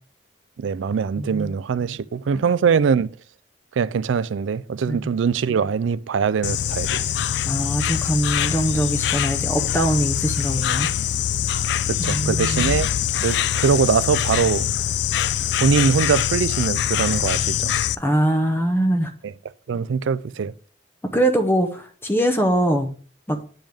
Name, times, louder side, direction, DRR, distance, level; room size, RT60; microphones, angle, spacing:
voice 1, 0.6-3.1 3.8-6.9 11.9-12.9 13.2-14.7 15.5-17.8 19.7-20.5, right 6 dB, 90° right, 0.4 m, -22 dB
voice 2, 1.2-1.6 2.3-2.5 4.9-5.1 7.5-10.9 12.0-12.7 18.0-19.1 21.1-22.9 23.3-23.4, right 1 dB, 10° left, 0.6 m, -22 dB
Insect, 6.4-17.9, left 10 dB, 65° left, 0.3 m, -23 dB
9.0 x 5.3 x 3.5 m
head